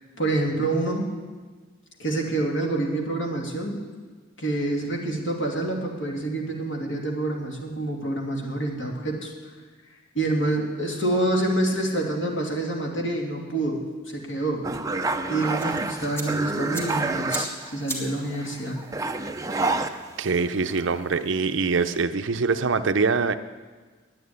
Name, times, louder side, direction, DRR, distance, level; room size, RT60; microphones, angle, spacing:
voice 1, 0.2-1.1 2.0-3.8 4.4-9.3 10.1-13.8 14.1-14.7 15.3-18.8, right 2 dB, 70° left, 0 dB, 2.6 m, -27 dB
sound 1, 14.6-17.9 18.2-20.5 20.8-21.2, right 3 dB, 15° right, 0.6 m, -29 dB
sound 2, 15.5-22.0, right 1 dB, 15° left, 2.1 m, -41 dB
voice 2, 19.5-19.8 20.2-23.3, right 4 dB, 65° right, 10 dB, 0.6 m, -24 dB
11.0 x 9.3 x 9.5 m, 1.4 s
head